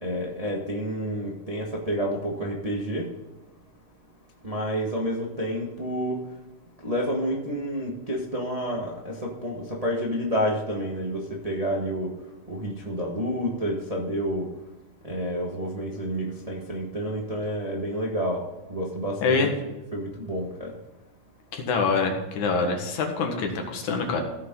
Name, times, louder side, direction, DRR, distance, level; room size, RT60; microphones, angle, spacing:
voice 1, 0.0-3.1 4.4-6.2 6.8-12.1 12.5-14.5 15.0-18.4 18.7-20.7, equal, 40° right, -2 dB, 0.5 m, -29 dB
voice 2, 21.5-24.2, left 4 dB, 70° left, 3 dB, 2.9 m, -25 dB
16.0 x 6.9 x 3.9 m, 1.1 s
omnidirectional pair, 3.8 m